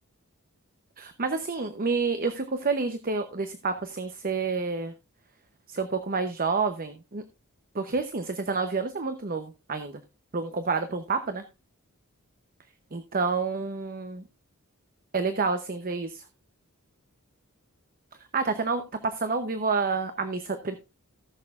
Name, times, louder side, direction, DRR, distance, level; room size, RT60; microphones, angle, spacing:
voice 1, 1.0-4.9 5.7-7.2 7.7-10.0 10.3-11.4 12.9-14.2 15.1-16.2 18.3-20.7, right 4 dB, 40° right, 9 dB, 0.8 m, -29 dB
18.5 x 6.6 x 2.4 m, 0.28 s
head